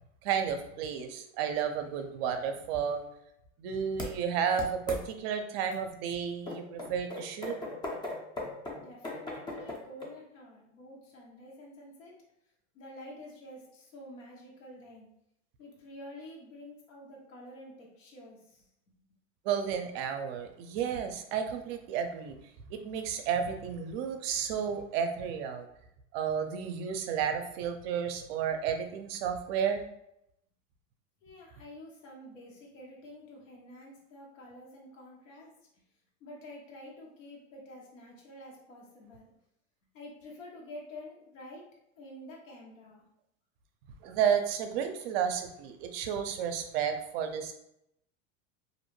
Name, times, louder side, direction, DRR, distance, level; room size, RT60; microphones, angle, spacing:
voice 1, 0.2-3.0 3.6-7.6 19.4-22.3 22.8-25.6 26.1-29.8 44.0-47.5, right 7 dB, 55° right, 6 dB, 0.5 m, -32 dB
sound 1, 4.0-4.1 4.6-5.0 5.7-5.8 6.5-10.1, left 2 dB, 10° left, 0.4 m, -37 dB
voice 2, 8.8-12.1 12.7-15.1 15.6-18.7 31.2-35.8 36.2-39.3 39.9-41.6 42.0-43.0, left 1 dB, 85° left, -3 dB, 1.0 m, -49 dB
2.6 x 2.1 x 3.0 m, 0.78 s
supercardioid pair, 120°, 38 cm